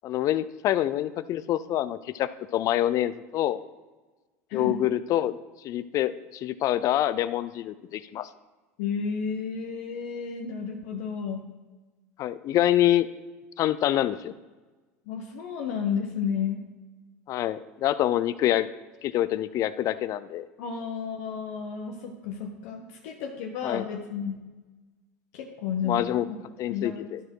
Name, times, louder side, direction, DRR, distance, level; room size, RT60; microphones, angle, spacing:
voice 1, 0.0-3.6 4.5-5.3 5.6-8.3 12.2-13.1 13.6-14.3 17.3-18.7 19.0-20.5 23.6-23.9 25.8-26.2 26.6-27.2, left 13 dB, 45° left, 15 dB, 0.4 m, -26 dB
voice 2, 4.5-4.8 8.8-11.5 15.1-16.6 20.6-24.4 25.3-26.4 26.7-27.1, left 6 dB, 70° left, 3 dB, 0.9 m, -32 dB
12.0 x 4.3 x 4.6 m, 1.2 s
hypercardioid pair, 90°, 7 cm